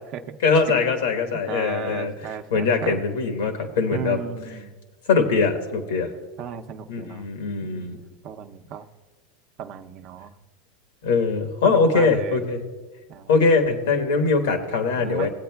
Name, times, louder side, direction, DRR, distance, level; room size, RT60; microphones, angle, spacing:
voice 1, 0.4-4.2 4.4-4.6 5.1-6.1 6.9-8.0 11.0-12.6 13.3-15.3, left 4 dB, 80° left, 6 dB, 1.3 m, -22 dB
voice 2, 1.5-2.9 3.9-4.7 6.4-7.3 7.6-8.8 9.6-10.3 11.6-12.4 13.1-13.3 15.0-15.3, right 8 dB, 50° right, 6 dB, 0.6 m, -35 dB
18.0 x 8.5 x 2.3 m, 1.3 s
hypercardioid pair, 100°, 0 cm